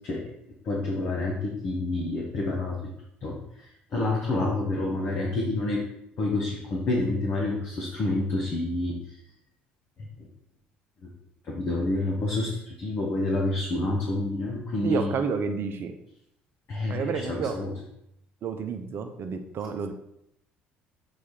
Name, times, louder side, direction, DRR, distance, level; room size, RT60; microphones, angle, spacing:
voice 1, 0.6-2.8 3.2-5.8 6.2-9.2 10.0-10.3 11.4-15.2 16.7-17.7, left 2 dB, 45° left, -2 dB, 1.5 m, -28 dB
voice 2, 14.8-16.0 16.9-17.6 18.4-19.9, right 5 dB, 45° right, 6 dB, 0.8 m, -30 dB
7.2 x 4.8 x 4.4 m, 0.78 s
figure-of-eight pair, 55°, 5 cm